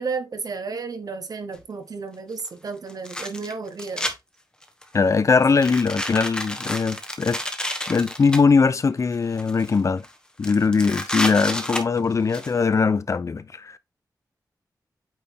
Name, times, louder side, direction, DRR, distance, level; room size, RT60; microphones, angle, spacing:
voice 1, 0.0-4.1, right 4 dB, 60° right, 1.4 m, -32 dB
sound 1, 1.6-1.7 2.9-4.1 4.6-4.9 5.5-8.4 9.1-9.8 10.0-10.1 10.4-12.5, left 1 dB, 10° left, 1.3 m, -30 dB
voice 2, 4.9-7.4 7.9-10.0 10.4-13.8, left 5 dB, 45° left, 0.7 m, -21 dB
8.9 x 4.2 x 3.6 m
wide cardioid pair, 125°, 7 cm